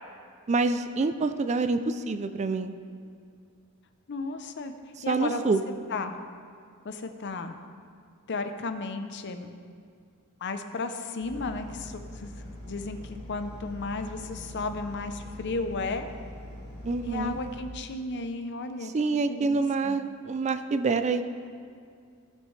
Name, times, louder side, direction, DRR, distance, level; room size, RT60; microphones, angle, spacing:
voice 1, 0.5-2.7 5.1-5.6 16.8-17.4 18.9-21.2, right 3 dB, 30° right, 10 dB, 0.4 m, -26 dB
voice 2, 4.1-4.7 5.0-5.5 5.9-6.1 6.8-7.5 8.3-9.5 10.4-12.3 12.7-16.1 17.0-18.9 19.3-20.0, left 3 dB, 55° left, 8 dB, 0.7 m, -34 dB
sound 1, 11.2-17.6, left 1 dB, 25° left, 2.5 m, -43 dB
16.5 x 6.7 x 3.3 m, 2.3 s
head